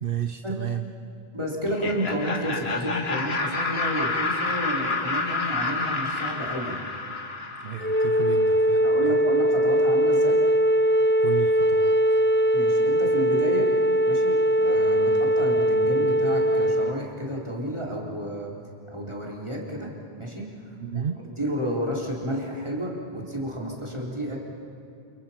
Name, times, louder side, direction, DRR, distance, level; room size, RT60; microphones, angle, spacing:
voice 1, 0.0-0.9 7.6-9.2 11.2-12.0 20.8-21.2, right 9 dB, 65° right, 8 dB, 1.0 m, -32 dB
voice 2, 1.3-6.8 8.1-8.2 8.8-10.4 12.5-13.7 14.1-18.6 18.9-19.9 20.2-20.5 20.9-21.1 21.4-24.4, equal, 30° right, -3 dB, 4.1 m, -31 dB
Laughter, 1.6-8.4, left 3 dB, 80° left, 1.9 m, -29 dB
Wind instrument woodwind instrument, 7.8-17.0, equal, 15° left, 0.4 m, -21 dB
29.0 x 28.0 x 5.9 m, 2.6 s
omnidirectional pair, 1.0 m